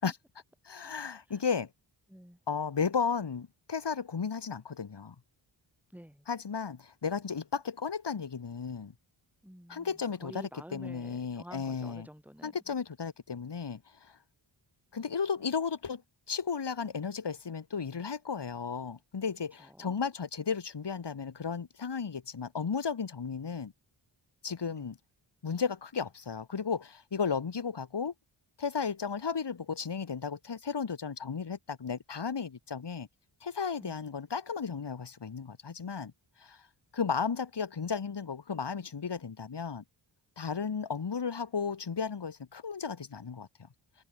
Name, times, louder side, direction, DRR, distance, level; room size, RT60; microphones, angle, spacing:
voice 1, 0.6-1.7 2.5-5.1 6.3-8.9 9.7-12.1 12.4-14.2 14.9-16.0 16.3-23.7 24.4-25.0 25.4-28.1 28.6-33.1 33.4-36.1 36.4-36.6 36.9-39.8 40.4-43.5, left 6 dB, 55° left, 2.7 m, -34 dB
voice 2, 5.9-6.3 9.4-12.7 19.6-19.9 24.7-24.9 33.8-34.1, equal, 5° right, 7.0 m, -50 dB
wide cardioid pair, 105°, 50 cm